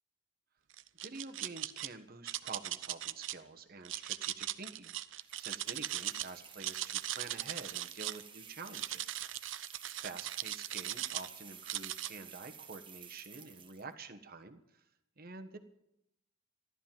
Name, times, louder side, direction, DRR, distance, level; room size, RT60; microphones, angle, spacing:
sound 1, 0.7-1.9 2.3-3.3 3.8-6.3 6.5-8.2 8.7-11.3 11.7-12.1, right 13 dB, 70° right, 0.6 m, -39 dB
voice 1, 1.0-9.2 9.6-14.8 15.2-15.6, right 3 dB, 50° right, 7 dB, 1.4 m, -48 dB
sound 2, 5.2-13.9, right 7 dB, 25° right, 1.4 m, -53 dB
14.0 x 12.5 x 7.5 m, 0.80 s
head